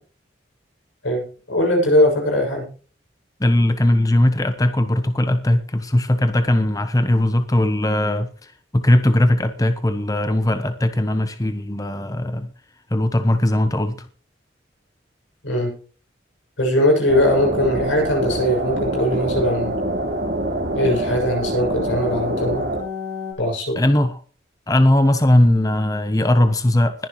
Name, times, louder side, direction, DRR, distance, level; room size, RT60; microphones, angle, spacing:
voice 1, 1.5-2.7 15.4-15.7 16.6-19.7 20.8-22.7 23.4-23.8, left 1 dB, 90° left, 2 dB, 6.9 m, -20 dB
voice 2, 3.4-12.5 12.9-14.1 23.8-24.2 24.7-27.1, left 1 dB, 20° left, 9 dB, 0.8 m, -19 dB
sound 1, 17.1-23.3, right 1 dB, 55° right, 3.9 m, -25 dB
20.5 x 10.5 x 3.1 m, 0.39 s
head